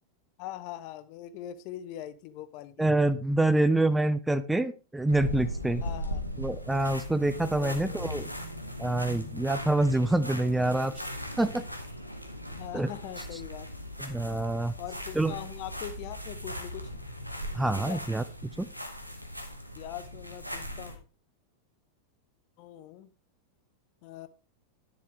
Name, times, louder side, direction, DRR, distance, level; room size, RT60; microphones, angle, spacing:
voice 1, 0.4-2.9 5.8-6.2 7.6-8.1 12.5-13.7 14.8-16.9 17.8-18.0 19.8-21.0 22.6-23.1 24.0-24.3, left 12 dB, 45° left, 13 dB, 0.7 m, -42 dB
voice 2, 2.8-5.8 6.4-8.3 8.8-10.9 11.4-11.6 12.7-12.9 14.0-14.7 15.2-15.3 17.5-18.2 18.6-18.7, right 2 dB, 5° right, 14 dB, 0.4 m, -26 dB
sound 1, 5.1-21.0, equal, 90° right, 1.1 m, -38 dB
10.0 x 7.3 x 3.2 m, 0.34 s
figure-of-eight pair, 90°, 0 cm